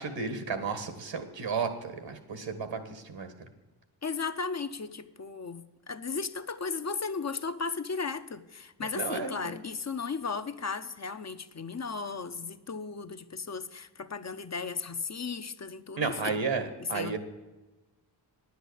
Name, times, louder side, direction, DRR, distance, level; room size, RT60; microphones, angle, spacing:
voice 1, 0.0-3.3 8.9-9.6 16.0-17.2, right 5 dB, 75° right, 1.8 m, -33 dB
voice 2, 4.0-16.4 16.8-17.2, left 5 dB, 35° left, 0.8 m, -35 dB
10.0 x 8.1 x 8.1 m
cardioid pair, 60°, 45 cm